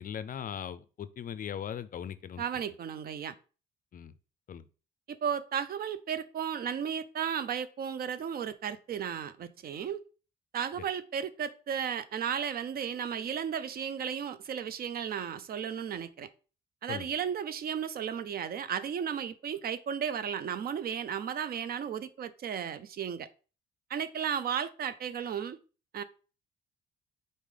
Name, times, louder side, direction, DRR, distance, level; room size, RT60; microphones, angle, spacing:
voice 1, 0.0-2.4 3.9-4.1 4.5-4.7 16.9-17.1, left 8 dB, 45° left, 0.4 m, -39 dB
voice 2, 2.4-3.3 5.1-10.0 10.5-16.3 16.8-23.3 23.9-25.6 25.9-26.0, right 8 dB, 50° right, 0.4 m, -34 dB
4.1 x 3.2 x 3.6 m
cardioid pair, 90°, 20 cm